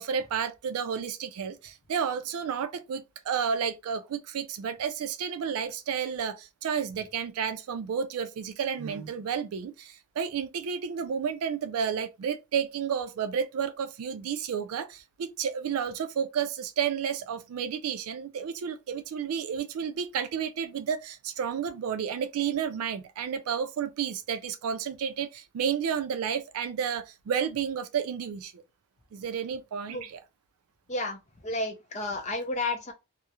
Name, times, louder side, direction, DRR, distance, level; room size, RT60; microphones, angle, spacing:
voice 1, 0.0-28.6 29.1-30.2, right 7 dB, 75° right, 0.3 m, -31 dB
voice 2, 31.4-32.9, left 2 dB, 30° left, 0.5 m, -31 dB
2.3 x 2.0 x 2.8 m
head